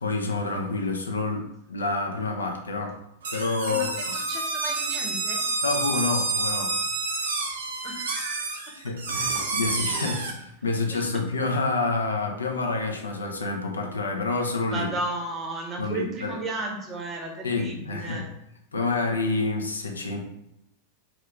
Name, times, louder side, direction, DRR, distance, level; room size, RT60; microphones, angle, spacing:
voice 1, 0.0-3.0 3.3-4.2 5.6-6.8 7.1-7.5 8.7-14.9 15.8-16.4 17.4-18.3 18.7-20.2, left 3 dB, 75° left, 3 dB, 0.4 m, -28 dB
sound 1, 3.2-10.3, right 3 dB, 65° right, 0.5 m, -29 dB
voice 2, 3.7-5.4 7.8-8.5 10.1-10.3 10.9-11.1 14.7-18.3, right 2 dB, 25° right, 0 dB, 0.7 m, -34 dB
2.7 x 2.4 x 3.4 m, 0.80 s
figure-of-eight pair, 90°, 0 cm